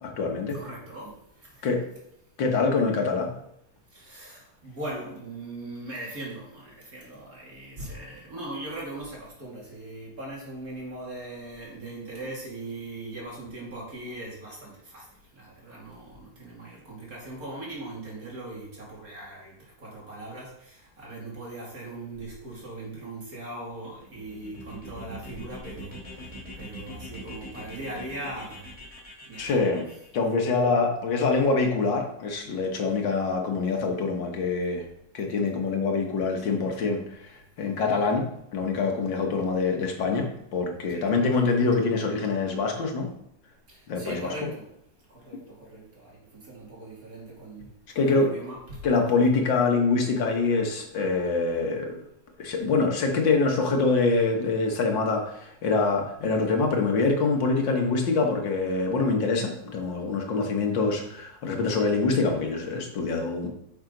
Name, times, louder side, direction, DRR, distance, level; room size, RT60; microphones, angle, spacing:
voice 1, 0.0-0.6 1.6-1.8 2.4-3.3 29.4-29.9 30.1-34.8 35.1-38.3 38.5-43.1 43.9-44.5 48.0-48.3 48.8-52.0 52.4-63.5, left 4 dB, 85° left, 2 dB, 2.1 m, -25 dB
voice 2, 0.5-1.7 3.9-15.1 15.3-28.7 29.2-29.7 40.9-41.1 43.7-44.7 45.1-47.7 47.9-48.9, right 2 dB, 50° right, -4 dB, 3.2 m, -40 dB
sound 1, 24.0-30.1, left 1 dB, 20° left, 2.7 m, -43 dB
9.5 x 6.4 x 3.9 m, 0.77 s
omnidirectional pair, 2.0 m